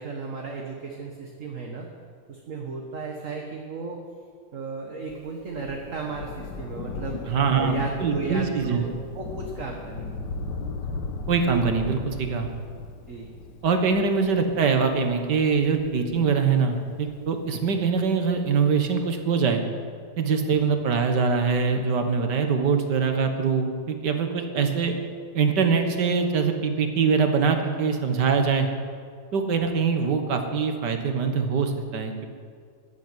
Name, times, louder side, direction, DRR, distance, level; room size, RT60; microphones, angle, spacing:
voice 1, 0.0-1.9 2.3-4.0 4.5-10.1 13.1-13.3, right 4 dB, 45° right, 1 dB, 1.6 m, -35 dB
Thunder, 5.1-18.0 18.9-19.0, left 4 dB, 65° left, 1.6 m, -37 dB
voice 2, 7.3-8.8 11.3-12.5 13.6-19.6 20.2-24.9 25.3-28.7 29.3-32.3, right 5 dB, 60° right, 6 dB, 2.0 m, -23 dB
15.0 x 8.4 x 9.7 m, 2.1 s
omnidirectional pair, 2.1 m